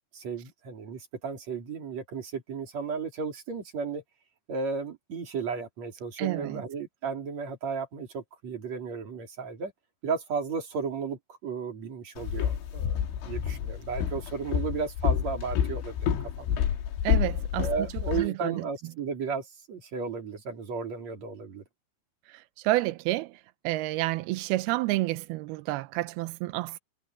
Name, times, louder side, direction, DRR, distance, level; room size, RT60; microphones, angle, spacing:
voice 1, 0.0-4.0 4.5-9.7 10.0-16.6 17.6-21.6, right 5 dB, 40° right, 4.3 m, -34 dB
voice 2, 6.2-6.6 17.0-17.7 18.1-18.6 22.3-26.8, right 18 dB, 90° right, 2.2 m, -30 dB
Walk footsteps, 12.2-18.3, left 9 dB, 85° left, 4.4 m, -29 dB
omnidirectional pair, 5.3 m